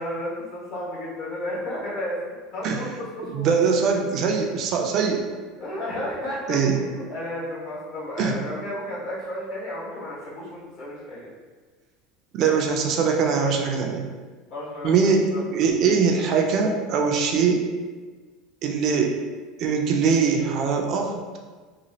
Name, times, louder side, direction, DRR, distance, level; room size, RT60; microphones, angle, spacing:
voice 1, 0.0-2.2 2.5-3.8 5.6-11.3 14.5-14.9 15.3-15.4, left 1 dB, 60° left, -7 dB, 1.4 m, -33 dB
voice 2, 3.3-5.2 6.5-6.8 8.2-8.4 12.3-14.1 14.8-17.6 18.6-19.1 19.6-21.1, right 5 dB, 45° right, 3 dB, 0.4 m, -22 dB
3.0 x 2.4 x 2.7 m, 1.4 s
supercardioid pair, 140°, 0 cm